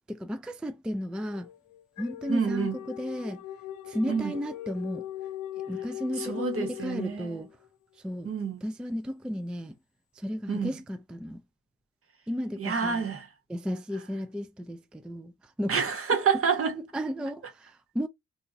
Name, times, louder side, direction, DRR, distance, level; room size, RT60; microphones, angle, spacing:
voice 1, 0.1-1.5 2.0-3.4 3.9-5.0 5.7-7.5 8.0-8.3 8.6-9.7 10.2-11.4 12.3-13.0 13.5-15.3 15.6-15.7 16.8-18.1, equal, 5° right, 0.3 m, -34 dB
sound 1, 1.3-7.7, left 12 dB, 70° left, 0.5 m, -39 dB
voice 2, 2.3-2.8 4.1-4.4 6.2-7.5 8.2-8.6 10.5-10.7 12.6-13.3 15.7-16.7, right 6 dB, 45° right, 1.3 m, -28 dB
2.9 x 2.6 x 3.7 m
cardioid pair, 90°, 30 cm